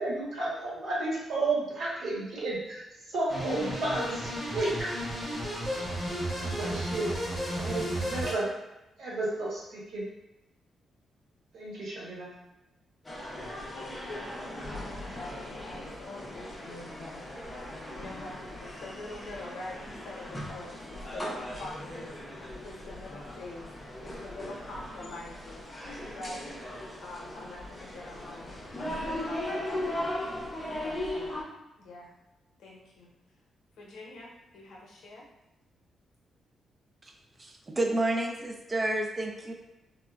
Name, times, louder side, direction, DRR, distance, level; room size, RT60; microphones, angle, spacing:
voice 1, 0.0-4.9 6.2-7.1 7.5-8.5 9.0-10.1 11.5-12.3, right 2 dB, 75° right, -5 dB, 1.0 m, -32 dB
sound 1, 3.3-8.3, equal, 5° right, 1.0 m, -33 dB
sound 2, 13.0-31.4, left 1 dB, 15° left, 0.6 m, -38 dB
voice 2, 13.7-17.2 18.0-22.1 22.6-23.7 24.0-25.6 26.1-26.5 27.0-30.2 30.7-31.5 31.8-32.1 32.6-33.1 33.8-35.3, left 2 dB, 80° left, -3 dB, 0.7 m, -45 dB
voice 3, 37.4-39.5, right 2 dB, 20° right, 3 dB, 0.3 m, -30 dB
3.4 x 2.0 x 2.3 m, 0.98 s
cardioid pair, 145°, 0 cm